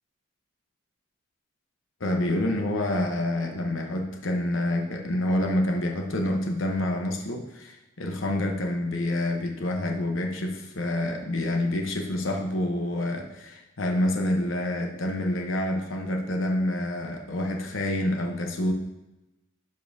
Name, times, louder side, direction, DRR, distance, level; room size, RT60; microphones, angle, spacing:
voice 1, 2.0-18.7, left 1 dB, 75° left, 2 dB, 0.9 m, -27 dB
11.0 x 5.2 x 2.7 m, 0.96 s
head